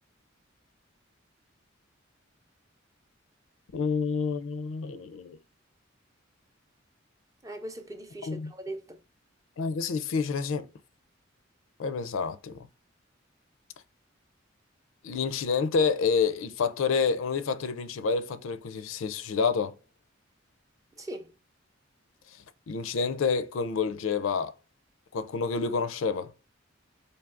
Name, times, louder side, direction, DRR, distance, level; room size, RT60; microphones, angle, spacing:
voice 1, 3.7-5.4 8.3-8.5 9.6-10.7 11.8-12.6 15.0-19.7 22.7-24.5 25.1-26.3, left 5 dB, 80° left, 0.4 m, -28 dB
voice 2, 7.4-9.0 21.0-21.3, right 1 dB, 15° right, 0.5 m, -40 dB
4.6 x 2.7 x 2.5 m
head